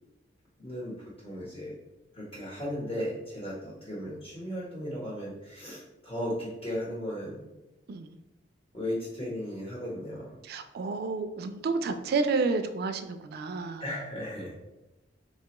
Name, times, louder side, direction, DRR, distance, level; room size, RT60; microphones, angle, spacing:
voice 1, 0.6-1.7 2.1-7.6 8.7-10.4 13.8-14.7, equal, 35° left, -6 dB, 0.9 m, -36 dB
voice 2, 10.5-13.8, right 4 dB, 55° right, 8 dB, 0.3 m, -30 dB
4.2 x 2.2 x 2.9 m, 0.96 s
head